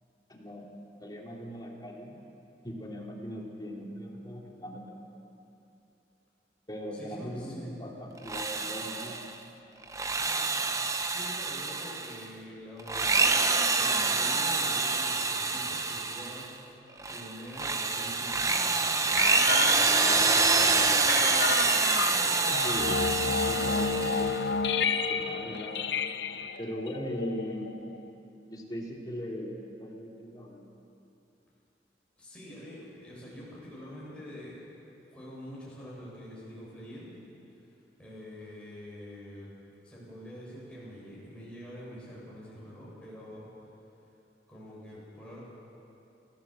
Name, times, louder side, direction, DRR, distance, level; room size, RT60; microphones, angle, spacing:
voice 1, 1.0-2.2 2.6-5.3 6.7-9.2 22.6-23.0 23.4-24.3 25.1-25.9 26.6-27.7 28.4-30.6, equal, 25° left, -1 dB, 3.0 m, -39 dB
voice 2, 6.9-7.8 11.0-19.2 19.6-20.9 32.2-34.8 35.1-37.2 38.0-39.5 39.8-43.5 44.5-45.4, equal, 5° left, -7 dB, 7.3 m, -46 dB
Drill, 8.2-9.3 9.8-12.2 12.8-16.5 17.0-24.5, right 4 dB, 20° right, 0.8 m, -27 dB
sound 1, 19.2-28.1, left 5 dB, 75° left, 0.8 m, -31 dB
28.5 x 15.5 x 7.6 m, 2.8 s
head